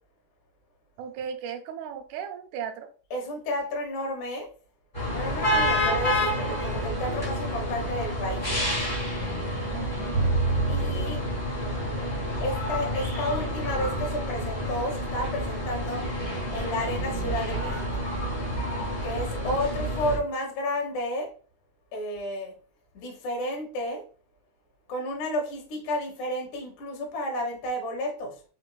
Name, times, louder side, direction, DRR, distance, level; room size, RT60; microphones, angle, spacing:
voice 1, 1.0-2.9 9.7-10.3, right 7 dB, 80° right, 7 dB, 2.1 m, -36 dB
voice 2, 3.1-4.5 5.1-8.5 10.7-11.2 12.4-16.0 16.5-18.0 19.0-21.3 21.9-22.5 23.0-24.0 24.9-28.4, left 1 dB, 75° left, 1 dB, 2.4 m, -31 dB
sound 1, 4.9-20.2, equal, 25° left, 1.2 m, -29 dB
Bowed string instrument, 10.1-16.3, right 3 dB, 45° right, 1.7 m, -32 dB
5.1 x 3.9 x 2.2 m, 0.40 s
omnidirectional pair, 3.6 m